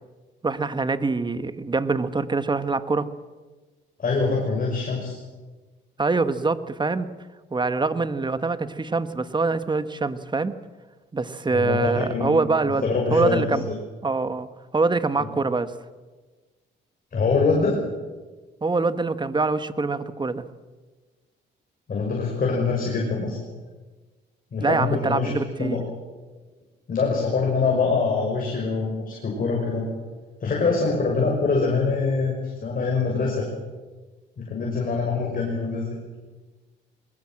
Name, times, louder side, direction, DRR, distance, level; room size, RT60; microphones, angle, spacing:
voice 1, 0.4-3.1 6.0-7.1 7.5-10.5 11.1-12.8 13.1-13.7 14.0-14.5 14.7-15.7 18.6-20.4 24.6-25.8, right 3 dB, 20° right, 12 dB, 1.4 m, -24 dB
voice 2, 4.0-5.2 11.5-13.8 17.1-17.8 21.9-23.4 24.5-25.3 25.6-25.8 26.9-29.9 30.4-33.5 34.4-36.0, left 4 dB, 45° left, -1 dB, 6.1 m, -24 dB
22.5 x 20.0 x 7.7 m, 1.3 s
cardioid pair, 90°, 20 cm